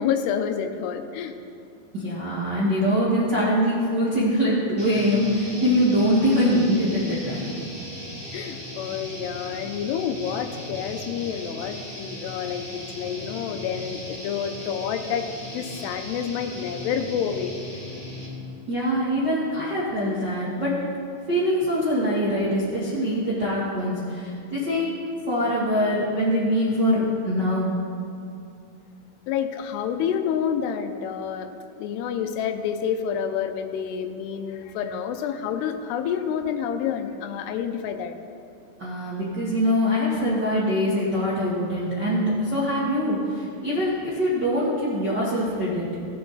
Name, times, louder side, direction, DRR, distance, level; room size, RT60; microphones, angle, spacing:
voice 1, 0.0-1.3 8.3-17.5 29.3-31.5 31.8-38.2, left 8 dB, 90° left, 8 dB, 2.8 m, -28 dB
voice 2, 1.9-7.6 18.7-20.8 21.3-25.0 25.3-27.7 38.8-45.9, equal, 60° right, -8 dB, 1.1 m, -23 dB
sound 1, 4.8-18.5, left 1 dB, 5° left, 1.0 m, -37 dB
16.0 x 8.0 x 4.0 m, 2.6 s
omnidirectional pair, 4.6 m